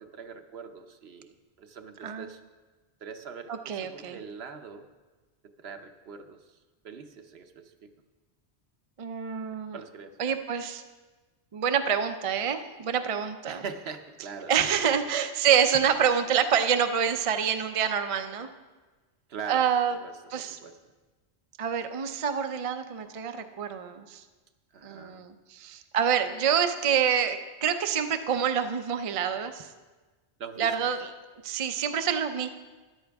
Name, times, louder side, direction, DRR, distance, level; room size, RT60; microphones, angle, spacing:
voice 1, 0.0-2.4 3.0-4.9 5.4-6.5 6.8-7.9 9.7-10.2 13.5-14.9 19.3-20.8 24.7-25.2 30.4-30.9, right 6 dB, 65° right, 7 dB, 1.0 m, -42 dB
voice 2, 3.5-4.2 9.0-9.8 10.2-10.8 11.5-13.6 14.5-18.5 19.5-20.0 20.3-20.6 21.6-24.2 24.8-29.7 30.6-31.1 31.4-32.5, right 8 dB, 40° right, 8 dB, 0.5 m, -27 dB
13.5 x 10.5 x 3.5 m, 1.3 s
omnidirectional pair, 1.2 m